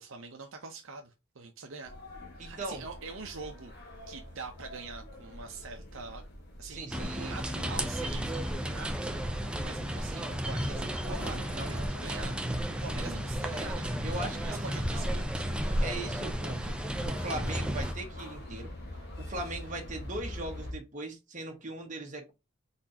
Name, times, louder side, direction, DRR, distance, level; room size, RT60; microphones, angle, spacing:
voice 1, 0.0-1.9 2.3-3.7 4.1-6.2 6.6-11.4 11.7-15.5, right 4 dB, 65° right, 0.8 m, -45 dB
sound 1, 1.8-20.7, left 1 dB, 50° left, 1.5 m, -45 dB
voice 2, 2.4-2.8 6.6-7.3 7.8-7.9 10.7-12.3 14.0-15.1 15.8-16.8 17.0-18.7 19.2-22.3, right 2 dB, 35° right, 1.3 m, -40 dB
sound 2, 6.9-17.9, equal, 5° right, 0.5 m, -33 dB
4.3 x 4.2 x 2.8 m
head